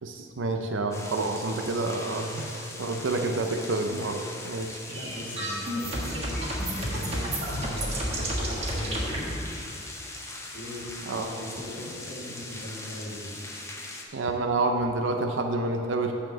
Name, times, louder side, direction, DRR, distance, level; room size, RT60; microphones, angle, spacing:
voice 1, 0.0-4.8 11.1-11.3 14.1-16.1, right 2 dB, 90° right, 4 dB, 0.6 m, -28 dB
sound 1, 0.9-14.0, left 2 dB, 15° left, 0.8 m, -41 dB
sound 2, 4.8-9.2, right 1 dB, 35° right, 1.5 m, -31 dB
voice 2, 4.9-9.5 10.5-13.4, equal, 50° left, -3 dB, 1.9 m, -39 dB
9.3 x 4.2 x 7.1 m, 2.7 s
head